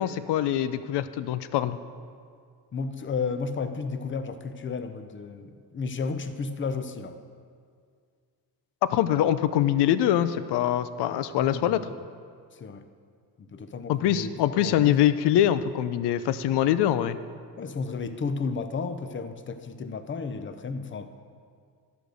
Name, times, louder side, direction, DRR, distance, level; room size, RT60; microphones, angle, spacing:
voice 1, 0.0-1.8 8.9-11.8 13.9-17.2, left 11 dB, 85° left, 13 dB, 0.6 m, -24 dB
voice 2, 2.7-7.2 11.4-11.8 12.5-12.8 13.4-15.0 17.6-21.1, left 4 dB, 30° left, 9 dB, 0.6 m, -33 dB
12.0 x 5.2 x 6.3 m, 2.1 s
cardioid pair, 115°, 40 cm